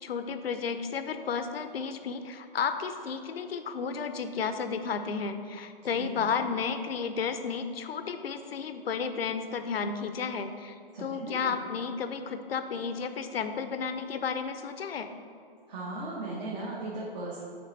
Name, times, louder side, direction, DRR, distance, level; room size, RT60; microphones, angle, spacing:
voice 1, 0.0-15.1, left 6 dB, 80° left, 9 dB, 0.6 m, -32 dB
voice 2, 5.9-6.4 10.9-11.5 15.7-17.4, right 2 dB, 45° right, -6 dB, 1.3 m, -37 dB
8.6 x 3.6 x 4.0 m, 2.3 s
hypercardioid pair, 130°, 30 cm